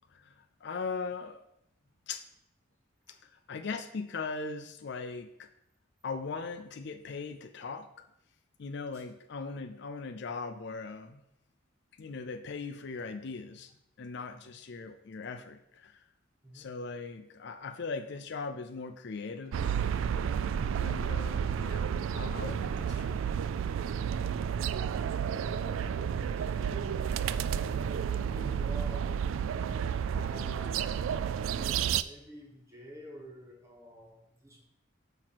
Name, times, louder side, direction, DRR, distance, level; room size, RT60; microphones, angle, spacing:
voice 1, 0.1-1.4 2.1-2.2 3.3-5.5 6.0-7.9 8.6-11.2 12.0-13.7 14.0-16.0 16.5-19.8 20.8-23.2, left 4 dB, 60° left, 8 dB, 0.5 m, -39 dB
sound 1, 19.5-32.0, right 8 dB, 80° right, 0.3 m, -31 dB
voice 2, 24.5-29.8 30.1-34.6, equal, 15° right, 0 dB, 1.5 m, -50 dB
8.9 x 3.0 x 6.0 m, 0.79 s
head